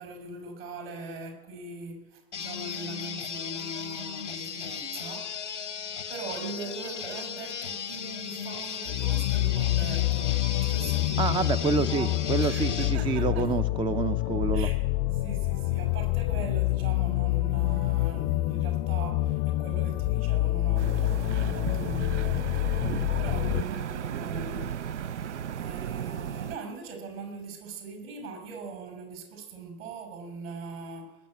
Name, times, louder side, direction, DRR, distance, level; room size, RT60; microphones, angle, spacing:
voice 1, 0.0-5.5 6.1-11.3 11.6-13.5 14.5-14.7 15.2-22.8 23.2-24.7 25.5-31.2, right 3 dB, 60° right, 4 dB, 5.8 m, -41 dB
sound 1, 2.3-13.0, left 7 dB, 85° left, 1.0 m, -36 dB
sound 2, 8.9-23.6, left 18 dB, 45° left, 0.6 m, -27 dB
voice 2, 11.2-14.7, right 5 dB, 15° right, 12 dB, 0.5 m, -28 dB
sound 3, 20.8-26.6, right 9 dB, 80° right, 0.5 m, -34 dB
19.5 x 7.7 x 9.4 m, 1.1 s
figure-of-eight pair, 85°, 35 cm